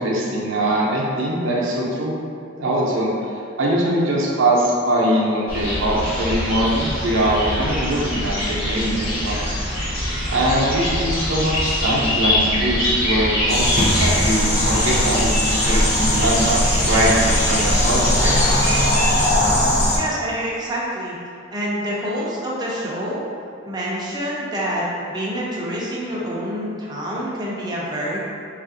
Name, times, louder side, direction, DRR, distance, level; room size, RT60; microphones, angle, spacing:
voice 1, 0.0-2.1 2.6-3.1 3.6-9.6 10.3-18.3, right 1 dB, 70° right, -4 dB, 0.6 m, -22 dB
sound 1, 5.5-18.9, left 1 dB, 85° left, 1.3 m, -24 dB
sound 2, 13.5-20.0, left 1 dB, 35° left, 0.5 m, -19 dB
voice 2, 19.9-21.2 21.5-23.2 23.6-28.2, equal, 20° right, -6 dB, 0.5 m, -27 dB
3.2 x 2.4 x 2.6 m, 2.4 s
head